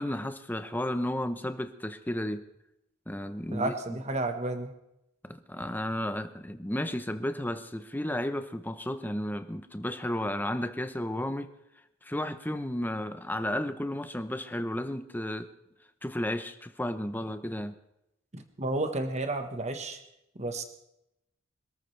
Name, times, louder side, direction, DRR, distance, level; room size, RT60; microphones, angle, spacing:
voice 1, 0.0-2.4 3.1-4.0 5.2-11.5 12.0-15.5 16.0-17.7, left 1 dB, 10° left, 9 dB, 0.8 m, -33 dB
voice 2, 3.5-4.7 18.3-20.0 20.3-20.6, right 2 dB, 35° right, 7 dB, 1.3 m, -32 dB
26.0 x 13.5 x 3.3 m, 0.84 s
head